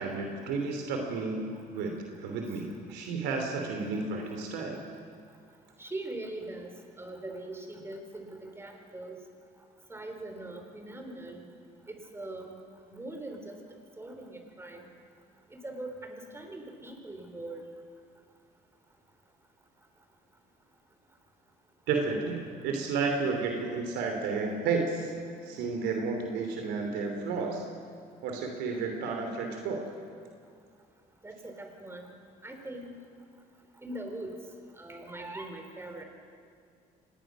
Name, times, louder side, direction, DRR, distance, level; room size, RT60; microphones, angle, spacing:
voice 1, 0.0-4.8 21.9-25.1 25.4-27.6 28.2-29.8, right 4 dB, 90° right, 2 dB, 3.3 m, -32 dB
voice 2, 5.8-6.7 7.0-9.2 9.9-11.4 11.9-12.6 12.9-13.6 14.0-14.9 15.5-17.7 31.2-32.1 32.4-33.0 33.8-34.3 34.8-36.0, right 2 dB, 15° right, 4 dB, 3.7 m, -41 dB
26.0 x 20.0 x 6.3 m, 2.3 s
cardioid pair, 110°, 17 cm